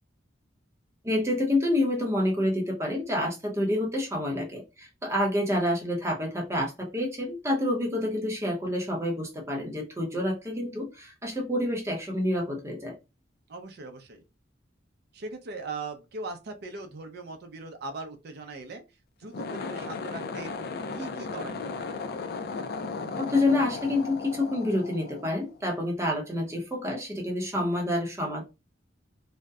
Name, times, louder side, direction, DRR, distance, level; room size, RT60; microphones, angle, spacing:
voice 1, 1.0-13.0 23.2-28.4, left 1 dB, 15° right, 0.7 m, -28 dB
voice 2, 13.5-14.2 15.1-18.8 19.2-20.5 20.9-22.0, right 3 dB, 60° right, 0.5 m, -40 dB
sound 1, 19.2-25.8, left 4 dB, 55° left, 0.3 m, -36 dB
2.6 x 2.1 x 2.3 m
head